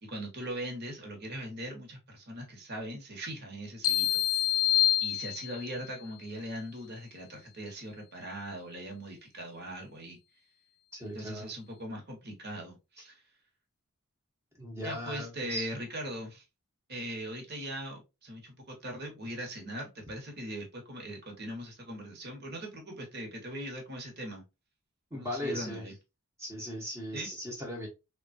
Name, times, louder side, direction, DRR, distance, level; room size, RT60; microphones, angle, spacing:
voice 1, 0.0-4.6 5.0-10.2 11.1-13.2 14.8-16.4 16.9-24.4 25.1-25.9 27.1-27.3, right 1 dB, 50° right, 1.1 m, -40 dB
sound 1, 3.8-5.8, left 12 dB, 75° left, 0.6 m, -27 dB
voice 2, 10.9-11.5 14.6-15.7 25.1-25.8 26.4-27.9, equal, 10° right, 0.9 m, -38 dB
3.5 x 2.3 x 2.5 m
head